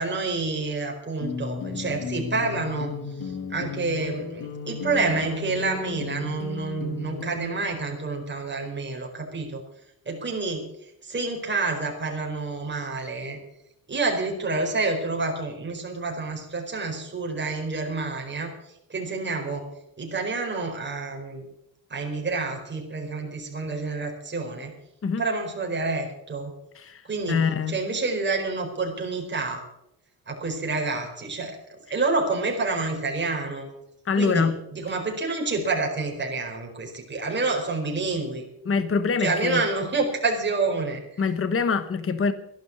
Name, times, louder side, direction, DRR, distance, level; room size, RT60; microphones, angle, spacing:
voice 1, 0.0-9.6 10.0-10.7 11.0-13.4 13.9-19.7 20.0-21.5 21.9-24.7 25.2-26.5 27.0-27.4 27.7-29.7 30.3-31.6 31.9-33.7 34.1-38.4 39.2-41.2, right 3 dB, 30° right, 4.6 m, -28 dB
sound 1, 1.2-7.6, left 4 dB, 70° left, 1.8 m, -35 dB
voice 2, 27.3-27.7 34.1-34.5 38.6-39.6 41.2-42.3, left 5 dB, 35° left, 1.2 m, -24 dB
14.0 x 11.5 x 6.9 m
cardioid pair, 125°, 37 cm